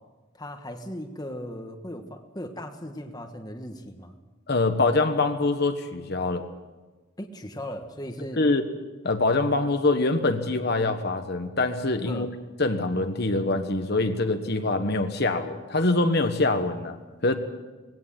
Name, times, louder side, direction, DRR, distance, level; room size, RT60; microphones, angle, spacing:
voice 1, 0.3-4.2 7.2-8.4 12.0-12.3, equal, 20° left, 5 dB, 1.4 m, -37 dB
voice 2, 4.5-6.4 8.4-8.6 9.0-12.3 12.6-17.4, left 2 dB, 50° left, 6 dB, 1.3 m, -24 dB
20.5 x 17.0 x 7.6 m, 1.3 s
head